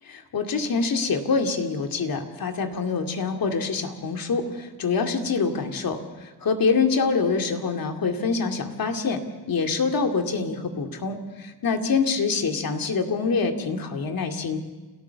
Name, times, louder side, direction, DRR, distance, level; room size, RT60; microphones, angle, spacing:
voice 1, 0.1-9.2 9.5-14.6, left 4 dB, 65° left, 4 dB, 2.5 m, -25 dB
29.5 x 13.5 x 7.1 m, 1.2 s
supercardioid pair, 55°, 38 cm